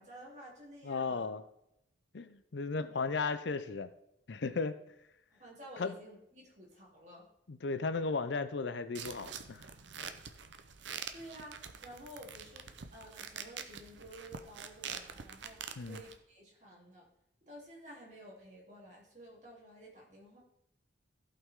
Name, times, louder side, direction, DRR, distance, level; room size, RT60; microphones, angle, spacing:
voice 1, 0.0-1.3 5.3-7.3 11.1-12.6 12.9-17.0 17.4-20.4, equal, 40° right, -4 dB, 3.4 m, -52 dB
voice 2, 0.8-1.4 2.1-3.9 4.3-4.7 5.8-5.9 7.5-9.6 15.8-16.0, left 4 dB, 70° left, 12 dB, 0.6 m, -35 dB
sound 1, 9.0-16.2, right 7 dB, 75° right, 0.8 m, -46 dB
15.5 x 5.7 x 3.7 m, 0.80 s
head